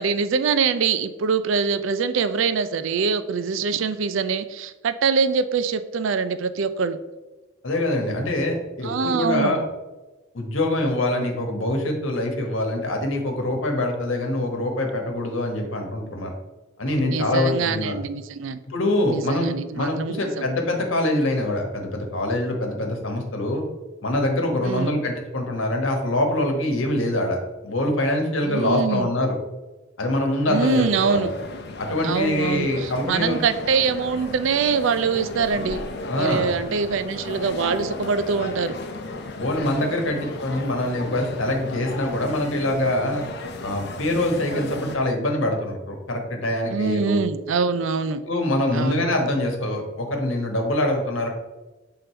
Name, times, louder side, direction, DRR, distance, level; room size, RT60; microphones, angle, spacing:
voice 1, 0.0-7.0 8.8-9.6 17.0-18.6 19.1-20.5 24.6-25.0 28.4-29.1 30.5-31.3 32.0-35.8 36.1-38.8 46.7-48.2 48.7-49.1, right 5 dB, 70° right, 12 dB, 0.4 m, -24 dB
voice 2, 7.6-9.6 10.3-16.3 16.8-18.0 18.7-19.5 19.7-23.7 24.0-29.4 30.0-31.2 31.8-33.4 36.1-36.5 39.4-43.2 43.6-47.2 48.2-51.3, left 1 dB, 75° left, 2 dB, 1.3 m, -24 dB
sound 1, 30.5-45.0, left 2 dB, 50° left, 0.6 m, -35 dB
6.7 x 3.8 x 4.4 m, 1.1 s
head